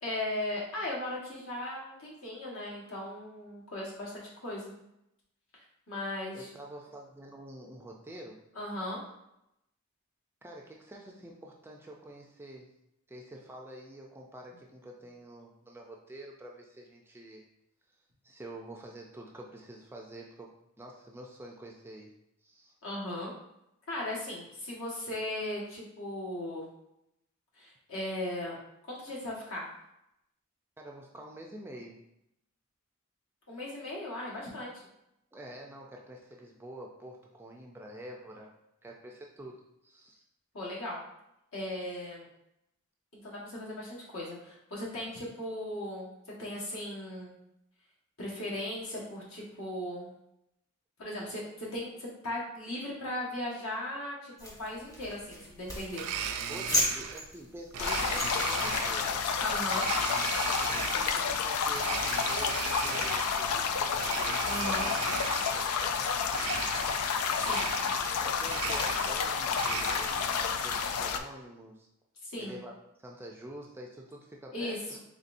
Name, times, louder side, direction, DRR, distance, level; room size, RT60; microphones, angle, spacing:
voice 1, 0.0-4.7 5.9-6.5 8.5-9.0 22.8-23.3 23.9-26.6 27.6-28.6 28.9-29.7 33.5-34.8 40.5-41.0 41.5-42.3 43.2-46.1 46.4-47.3 48.2-50.1 51.0-56.0 59.4-59.9 64.4-64.9 67.4-67.7 72.2-72.6 74.5-75.0, left 1 dB, 70° left, -4 dB, 1.4 m, -37 dB
voice 2, 6.3-8.4 10.4-12.7 13.1-17.5 18.2-22.7 30.8-32.0 35.3-38.5 38.8-39.6 39.8-40.2 56.5-59.2 60.5-64.9 65.4-66.3 68.2-71.9 72.4-72.7 73.0-75.0, right 1 dB, 10° right, 0 dB, 0.4 m, -47 dB
sound 1, 54.4-58.9, equal, 15° left, 0.8 m, -36 dB
Domestic sounds home sounds, 55.9-57.2 57.7-59.2 59.7-61.3 61.7-63.5 63.9-65.7 66.3-67.1 67.4-68.2 68.4-70.3, right 7 dB, 85° right, 0.4 m, -37 dB
sound 2, 57.8-71.2, left 6 dB, 85° left, 0.3 m, -30 dB
4.1 x 3.6 x 2.5 m, 0.82 s
head